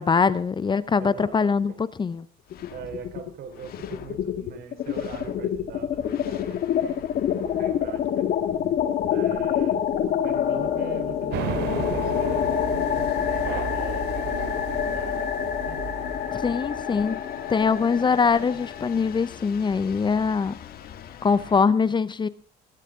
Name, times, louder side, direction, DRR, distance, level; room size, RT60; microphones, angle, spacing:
voice 1, 0.0-2.2 16.3-17.2 17.5-20.5 21.2-22.3, left 5 dB, 25° left, 0.7 m, -23 dB
voice 2, 1.0-1.8 2.7-7.1 7.4-8.3 9.1-9.9 10.2-12.6 13.3-16.0, right 8 dB, 65° right, 3.5 m, -41 dB
sound 1, 2.5-3.3 3.6-21.6, left 9 dB, 65° left, 1.9 m, -28 dB
sound 2, 11.3-16.7, right 8 dB, 80° right, 2.6 m, -34 dB
20.0 x 12.5 x 3.7 m
cardioid pair, 110°, 17 cm